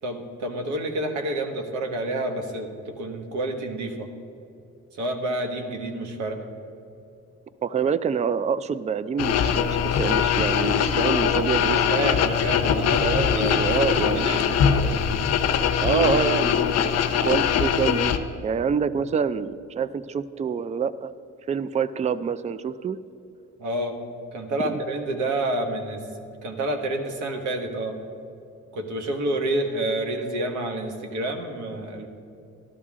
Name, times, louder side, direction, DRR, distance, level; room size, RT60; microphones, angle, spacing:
voice 1, 0.0-4.1 4.9-6.5 11.7-13.1 13.3-15.2 23.6-24.0 24.3-26.1 26.4-28.0 28.7-32.1, right 1 dB, 80° right, 4 dB, 1.5 m, -29 dB
voice 2, 7.6-11.8 13.0-15.0 15.8-18.1 18.4-21.1 21.5-23.0 24.6-24.8, right 6 dB, 25° right, 15 dB, 0.4 m, -27 dB
sound 1, 9.2-18.2, left 8 dB, 60° left, 0.7 m, -22 dB
13.5 x 12.0 x 3.7 m, 2.7 s
cardioid pair, 105°, 29 cm